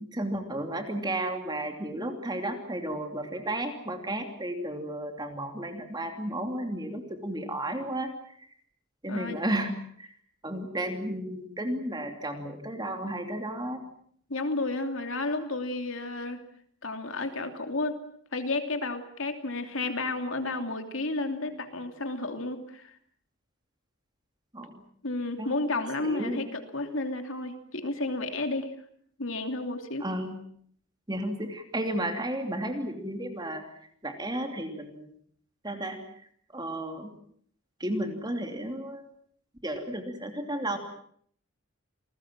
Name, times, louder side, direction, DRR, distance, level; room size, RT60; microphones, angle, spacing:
voice 1, 0.0-8.5 9.0-9.7 10.0-10.1 10.4-13.8 24.5-24.7 25.4-25.6 26.0-26.4 30.0-30.3 31.1-33.6 34.0-35.1 35.6-36.0 36.5-37.1 37.8-39.1 39.6-40.8, right 1 dB, 20° right, 5 dB, 3.0 m, -33 dB
voice 2, 14.3-16.4 16.8-18.0 18.3-23.0 25.0-28.7 29.2-30.0, left 2 dB, 65° left, 6 dB, 3.0 m, -32 dB
29.0 x 20.5 x 7.5 m, 0.64 s
head